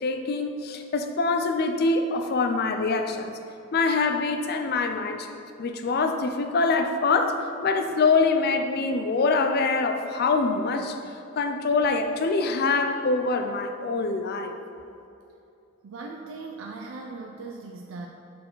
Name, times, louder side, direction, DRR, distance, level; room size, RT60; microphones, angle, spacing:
voice 1, 0.0-3.3 3.7-5.3 5.6-11.0 11.4-14.5, left 3 dB, 50° left, 6 dB, 0.4 m, -24 dB
voice 2, 15.8-18.1, right 3 dB, 90° right, 2 dB, 0.4 m, -39 dB
6.4 x 4.3 x 3.9 m, 2.8 s
head